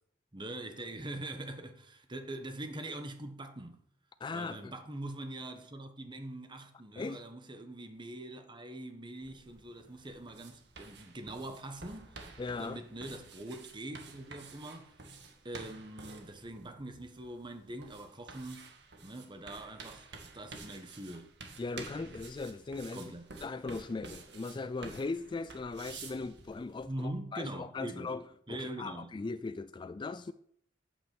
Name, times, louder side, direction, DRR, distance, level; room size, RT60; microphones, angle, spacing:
voice 1, 0.3-3.8 4.3-14.9 15.4-18.7 19.0-20.1 20.3-21.3 22.9-23.2 26.8-28.1 28.5-29.1, right 1 dB, 25° right, 1.3 m, -43 dB
voice 2, 4.2-4.7 7.0-7.2 12.4-12.8 21.6-23.0 23.4-30.3, left 3 dB, 25° left, 0.3 m, -39 dB
sound 1, 9.2-26.9, right 4 dB, 65° right, 1.6 m, -51 dB
8.8 x 6.1 x 7.0 m
head